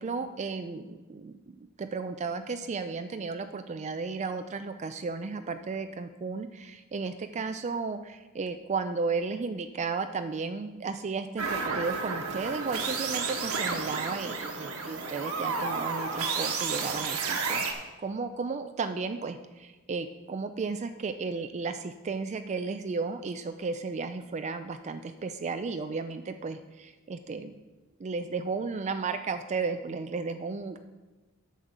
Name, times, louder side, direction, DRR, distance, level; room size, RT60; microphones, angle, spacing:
voice 1, 0.0-1.3 1.8-17.6 18.0-27.6 28.0-30.8, right 4 dB, 30° right, 9 dB, 0.4 m, -34 dB
sound 1, 11.4-17.7, right 4 dB, 75° right, 1.3 m, -31 dB
8.6 x 6.4 x 6.7 m, 1.2 s
head